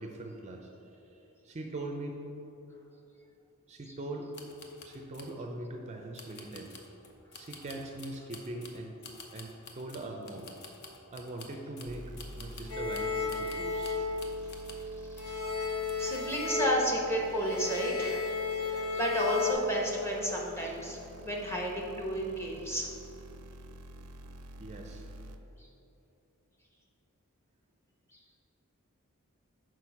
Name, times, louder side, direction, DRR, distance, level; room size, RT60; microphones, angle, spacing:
voice 1, 0.0-2.2 3.7-4.4 4.8-6.7 7.3-8.9 9.3-10.5 11.1-13.9 24.6-25.0, right 2 dB, 30° right, 2 dB, 0.5 m, -41 dB
sound 1, 4.3-5.4 6.1-14.9 15.2-15.4 15.9-16.3 16.7-16.8, left 4 dB, 50° left, 0.7 m, -51 dB
sound 2, 11.9-25.4, equal, 90° right, 0.5 m, -49 dB
sound 3, 12.7-14.8 15.2-19.5, left 3 dB, 75° left, 1.1 m, -33 dB
voice 2, 16.0-18.3 18.7-22.9, equal, 10° left, -1 dB, 0.9 m, -32 dB
6.2 x 4.6 x 5.7 m, 3.0 s
head